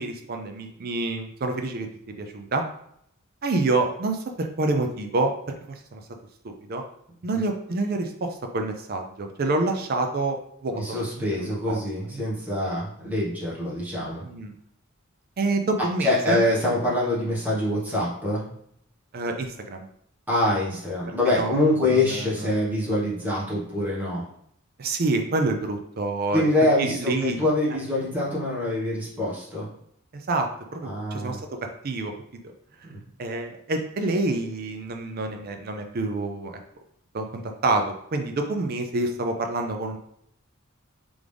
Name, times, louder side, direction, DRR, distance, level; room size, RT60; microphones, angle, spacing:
voice 1, 0.0-1.9 2.2-2.6 3.4-5.3 5.9-6.0 6.7-6.8 7.2-10.8 11.4-11.8 12.1-12.2 12.6-12.7 14.2-14.5 15.4-16.4 19.1-19.9 21.3-21.6 21.8-22.5 24.8-26.4 26.8-27.4 30.3-31.6 31.8-32.1 33.2-36.6 37.1-40.0, right 2 dB, 45° right, 5 dB, 0.5 m, -27 dB
voice 2, 10.7-14.2 16.0-18.5 20.3-24.3 26.3-29.7 30.8-31.4 32.8-33.0, left 1 dB, 10° right, -8 dB, 1.4 m, -25 dB
3.7 x 3.5 x 3.4 m, 0.71 s
head